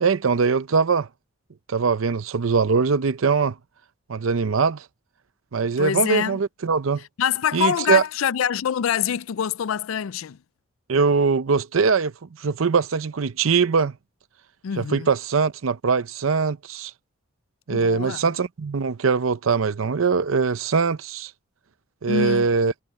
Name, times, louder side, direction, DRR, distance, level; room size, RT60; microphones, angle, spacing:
voice 1, 0.0-1.1 1.7-3.5 4.1-4.9 5.5-7.0 7.5-8.0 10.9-12.1 12.4-13.9 14.8-16.9 17.7-21.3 22.0-22.7, right 5 dB, 80° right, 0.6 m, -22 dB
voice 2, 5.8-6.4 7.2-10.4 14.6-15.1 17.7-18.2 22.1-22.5, left 8 dB, 85° left, 0.4 m, -25 dB
head